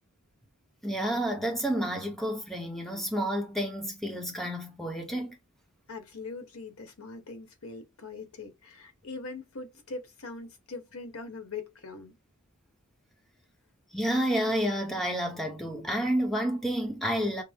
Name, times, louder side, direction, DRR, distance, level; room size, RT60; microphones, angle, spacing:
voice 1, 0.8-5.4 13.9-17.4, equal, ahead, 0.8 m, -30 dB
voice 2, 5.9-12.1, left 3 dB, 75° left, 1.2 m, -42 dB
5.9 x 2.1 x 3.5 m
head